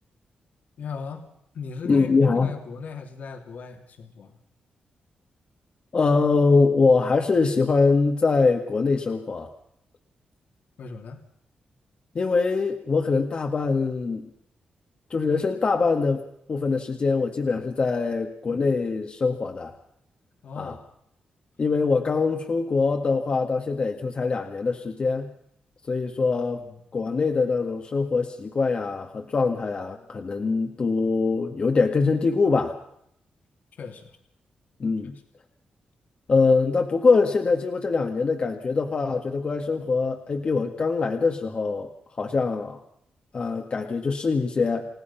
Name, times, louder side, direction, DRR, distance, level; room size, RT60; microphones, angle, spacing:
voice 1, 0.8-1.2 1.5-4.4 10.8-11.2 20.4-20.8 26.3-26.8 33.8-34.1, left 5 dB, 70° left, 3 dB, 3.1 m, -38 dB
voice 2, 1.8-2.5 5.9-9.5 12.2-14.3 15.1-19.7 20.6-20.8 21.6-25.3 25.9-26.6 26.9-32.8 34.8-35.1 36.3-42.8 43.3-44.9, left 4 dB, 40° left, 3 dB, 1.8 m, -23 dB
29.5 x 16.5 x 5.8 m, 0.73 s
wide cardioid pair, 125°, 3 cm